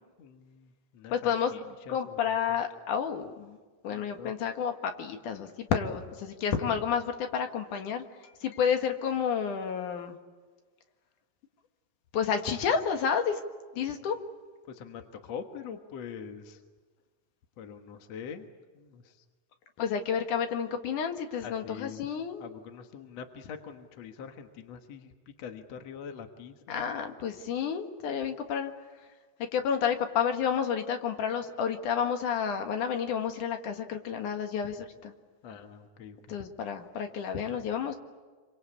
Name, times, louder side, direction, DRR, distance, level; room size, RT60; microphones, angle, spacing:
voice 1, 0.0-2.6 3.9-4.3 14.6-16.6 17.6-18.5 18.7-19.3 21.4-22.1 22.4-25.1 25.4-26.9 35.4-36.4, left 7 dB, 60° left, 6 dB, 2.4 m, -44 dB
voice 2, 1.1-1.5 1.9-3.6 3.8-10.2 12.1-13.4 13.7-14.2 19.8-22.4 26.7-28.7 29.5-35.1 36.3-38.0, left 7 dB, 75° left, 5 dB, 3.2 m, -30 dB
27.0 x 25.0 x 8.5 m, 1.4 s
omnidirectional pair, 3.6 m